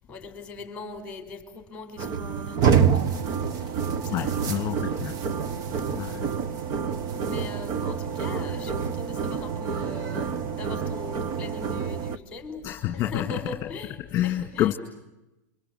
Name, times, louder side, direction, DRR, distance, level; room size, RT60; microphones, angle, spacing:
voice 1, 0.1-3.0 4.0-5.1 7.2-14.7, left 3 dB, 10° left, 5.4 m, -41 dB
sound 1, 2.0-12.2, right 7 dB, 35° right, 1.3 m, -27 dB
voice 2, 4.1-5.1 5.9-6.3 12.6-13.7 14.1-14.7, left 13 dB, 30° left, 2.0 m, -28 dB
29.5 x 25.5 x 8.0 m
supercardioid pair, 145°, 10 cm